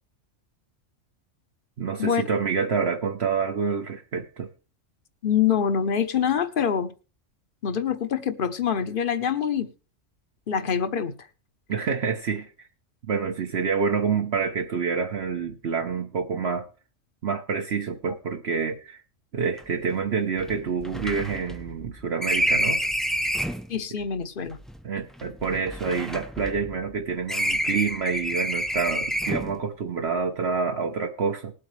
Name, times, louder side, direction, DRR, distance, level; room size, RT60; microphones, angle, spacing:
voice 1, 1.8-4.5 11.7-12.5 13.0-16.7 17.2-19.0 19.3-22.8 23.1-23.2 24.8-31.5, right 5 dB, 60° right, 1.2 m, -27 dB
voice 2, 5.2-6.9 7.6-9.7 10.5-11.1 23.7-24.6, left 8 dB, 45° left, 1.0 m, -25 dB
sound 1, 19.6-19.7 19.9-20.0 20.4-23.7 24.5-26.9 27.3-29.6, equal, ahead, 0.5 m, -28 dB
19.5 x 8.2 x 3.2 m
omnidirectional pair, 1.3 m